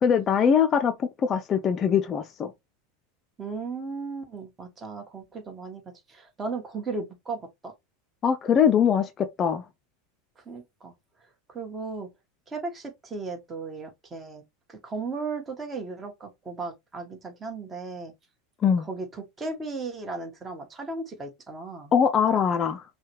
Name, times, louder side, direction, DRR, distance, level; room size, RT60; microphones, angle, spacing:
voice 1, 0.0-2.5 8.2-9.7 18.6-18.9 21.9-22.8, left 7 dB, 35° left, 0.5 m, -22 dB
voice 2, 3.4-5.8 6.1-7.7 10.4-10.9 11.5-12.1 12.5-14.4 14.7-18.1 18.8-21.9, right 3 dB, 20° right, 1.4 m, -36 dB
5.4 x 2.3 x 3.1 m
hypercardioid pair, 95°, 0 cm